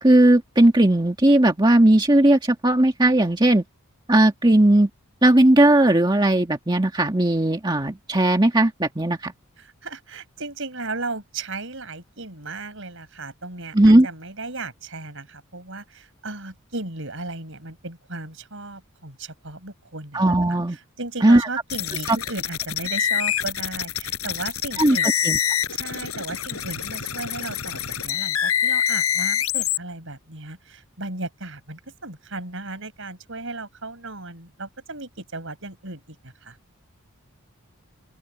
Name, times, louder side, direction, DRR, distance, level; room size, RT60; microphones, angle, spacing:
voice 1, 0.0-3.6 4.1-4.9 5.2-9.3 13.7-14.1 20.1-20.8 21.2-21.5 22.1-22.2 24.8-25.4, right 1 dB, 20° right, 1.8 m, -17 dB
voice 2, 9.6-20.2 20.5-25.1 25.7-36.6, right 3 dB, 65° right, 6.0 m, -35 dB
sound 1, 21.7-29.8, left 9 dB, 85° left, 5.7 m, -26 dB
open air
head